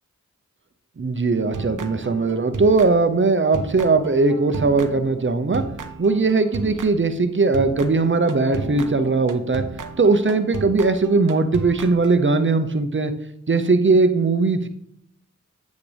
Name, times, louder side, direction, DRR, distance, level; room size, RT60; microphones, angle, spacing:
voice 1, 1.0-5.6 6.0-9.6 10.0-13.1 13.5-14.7, right 3 dB, 40° right, 8 dB, 0.8 m, -19 dB
sound 1, 1.5-3.3 3.5-7.1 7.5-12.1, right 4 dB, 80° right, 0.7 m, -34 dB
8.5 x 8.3 x 3.4 m, 0.73 s
wide cardioid pair, 60°, 31 cm